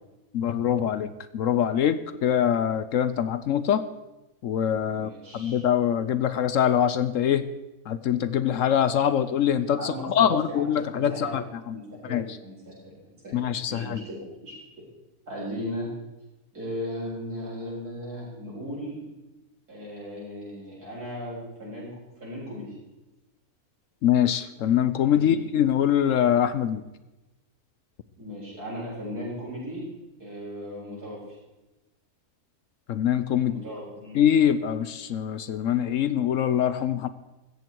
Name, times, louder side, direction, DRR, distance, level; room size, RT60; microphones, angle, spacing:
voice 1, 0.3-3.8 4.4-7.4 7.9-11.7 12.1-12.2 13.3-14.0 24.0-26.8 32.9-33.5 34.1-37.1, left 9 dB, 65° left, 14 dB, 1.0 m, -24 dB
voice 2, 4.9-5.7 9.8-11.4 11.7-14.6 15.3-15.9 16.5-19.0 19.7-21.9 22.2-22.8 25.2-25.4 28.2-29.8 30.2-31.2 33.3-34.2, equal, 80° right, -6 dB, 7.6 m, -37 dB
16.0 x 14.0 x 4.6 m, 1.0 s
omnidirectional pair, 1.6 m